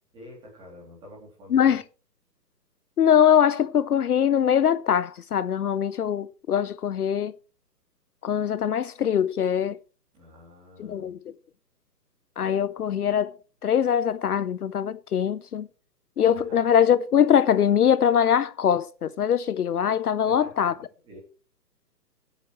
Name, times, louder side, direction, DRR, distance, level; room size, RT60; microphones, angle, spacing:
voice 1, 0.1-1.8 10.1-11.1 12.9-13.1 16.2-16.6 20.2-20.7 21.0-21.2, left 1 dB, 10° right, 3.1 m, -48 dB
voice 2, 1.5-1.8 3.0-7.3 8.2-9.8 10.8-11.2 12.4-15.7 16.2-20.7, left 8 dB, 65° left, 0.7 m, -22 dB
21.5 x 8.3 x 3.2 m
hypercardioid pair, 170°, 50 cm